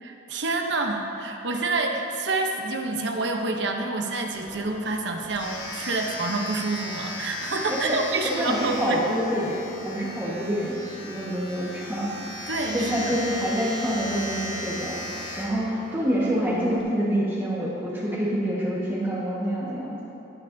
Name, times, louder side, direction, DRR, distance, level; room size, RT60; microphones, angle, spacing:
voice 1, 0.0-9.0 10.0-10.1 12.5-13.2, right 3 dB, 65° right, 3 dB, 0.8 m, -28 dB
Domestic sounds home sounds, 4.3-16.8, left 1 dB, 70° left, 1.4 m, -37 dB
voice 2, 8.4-12.1 12.7-20.0, equal, 10° right, -7 dB, 1.3 m, -27 dB
18.0 x 6.7 x 2.7 m, 2.9 s
head